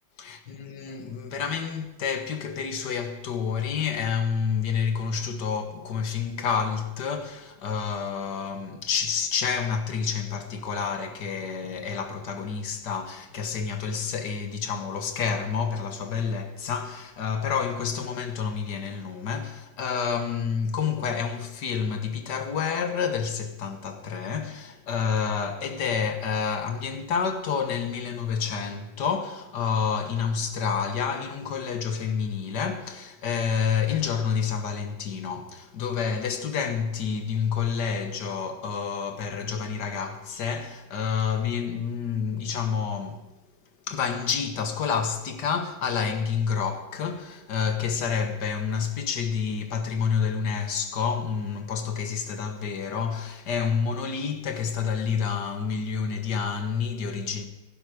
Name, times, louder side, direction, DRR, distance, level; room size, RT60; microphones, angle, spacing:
voice 1, 0.2-43.3 43.9-57.4, left 6 dB, 60° left, 1.8 m, -29 dB
15.5 x 11.5 x 5.0 m
omnidirectional pair, 2.1 m